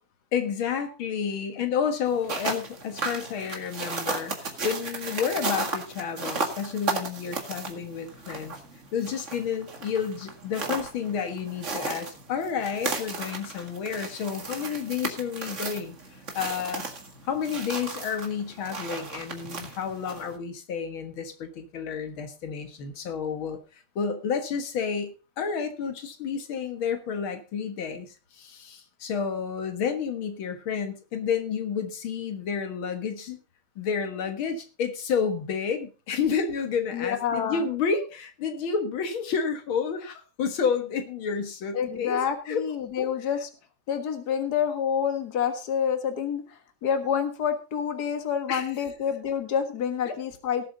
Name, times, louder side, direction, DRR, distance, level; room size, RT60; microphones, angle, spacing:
voice 1, 0.3-8.6 8.9-15.9 16.3-16.9 17.2-33.4 33.8-42.2 42.5-42.7 43.0-43.1 48.5-48.7 50.1-50.2, left 6 dB, 85° left, 7 dB, 2.3 m, -30 dB
sound 1, 2.1-20.4, right 3 dB, 40° right, 2.1 m, -35 dB
voice 2, 36.9-37.7 41.7-43.5 43.9-50.7, left 8 dB, 55° left, 7 dB, 2.1 m, -28 dB
18.0 x 7.8 x 3.9 m, 0.32 s
omnidirectional pair, 2.2 m